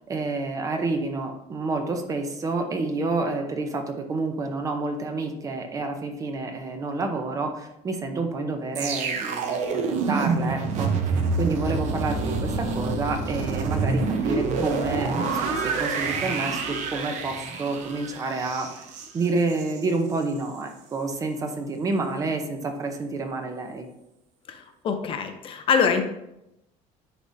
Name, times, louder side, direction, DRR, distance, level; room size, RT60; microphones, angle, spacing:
voice 1, 0.1-18.8 19.1-23.9, right 3 dB, 25° right, 5 dB, 0.6 m, -29 dB
sound 1, 8.8-19.9 20.2-20.4, right 4 dB, 60° right, 0.8 m, -27 dB
voice 2, 24.5-26.0, left 6 dB, 40° left, 6 dB, 0.6 m, -24 dB
10.0 x 3.5 x 2.7 m, 0.87 s
cardioid pair, 160°, 14 cm